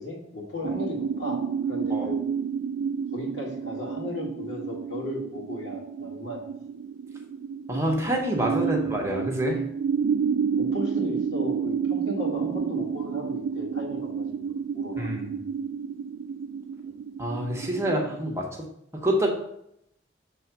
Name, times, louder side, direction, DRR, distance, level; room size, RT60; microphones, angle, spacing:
voice 1, 0.0-2.2 3.1-6.4 8.6-8.7 10.5-15.1, left 1 dB, 75° left, -2 dB, 1.9 m, -36 dB
sound 1, 0.6-18.3, right 6 dB, 90° right, 0.3 m, -30 dB
voice 2, 7.7-9.6 15.0-15.4 17.2-19.3, right 1 dB, 15° right, 0 dB, 0.9 m, -27 dB
6.3 x 3.4 x 5.8 m, 0.77 s
head